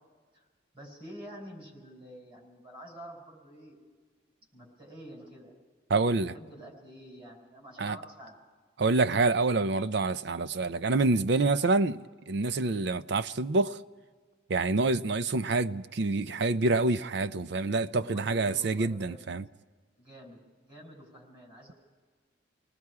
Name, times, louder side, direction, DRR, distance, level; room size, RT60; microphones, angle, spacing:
voice 1, 0.7-3.8 4.5-5.5 6.1-8.4 17.9-19.3 20.0-21.7, equal, 25° right, 5.1 m, -48 dB
voice 2, 5.9-6.3 7.8-8.0 8.8-12.0 12.3-13.8 14.5-19.4, right 3 dB, 55° right, 0.5 m, -27 dB
28.0 x 19.5 x 4.8 m
head